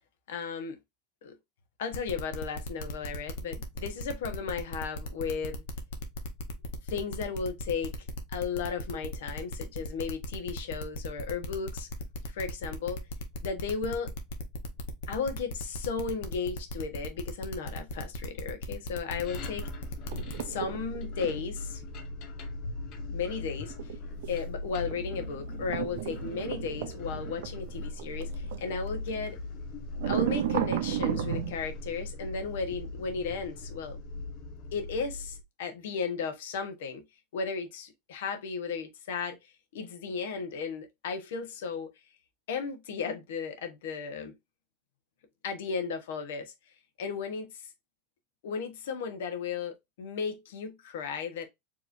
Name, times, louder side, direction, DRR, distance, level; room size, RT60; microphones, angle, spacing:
voice 1, 0.3-0.8 1.2-1.3 1.8-5.6 6.8-7.9 8.3-11.9 12.3-13.0 13.4-14.1 15.1-19.7 20.4-21.8 23.1-23.9 24.3-29.4 30.0-34.0 34.7-37.0 37.3-41.9 42.5-44.3 45.4-46.5 47.0-47.7 48.4-51.5, left 5 dB, 85° left, 1.0 m, -35 dB
sound 1, 1.9-20.4, left 2 dB, 60° left, 1.0 m, -37 dB
sound 2, 19.1-35.4, left 2 dB, 35° left, 0.7 m, -39 dB
Rolling Ball Wood Floor - Various, 20.1-21.5 23.6-28.7 29.1-29.3 30.0-31.5, right 13 dB, 75° right, 0.5 m, -34 dB
4.7 x 3.1 x 2.6 m
supercardioid pair, 175°, 0 cm